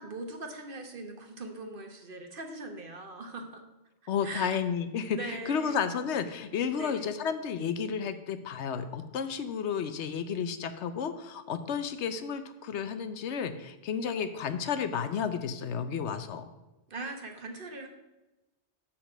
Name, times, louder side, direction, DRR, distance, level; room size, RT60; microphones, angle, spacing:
voice 1, 0.0-3.6 4.2-4.6 5.1-5.8 6.8-7.1 16.9-17.9, right 2 dB, 55° right, 4 dB, 1.3 m, -41 dB
voice 2, 4.1-16.5, left 7 dB, 85° left, 10 dB, 1.0 m, -32 dB
6.9 x 5.8 x 6.6 m, 1.0 s
omnidirectional pair, 1.1 m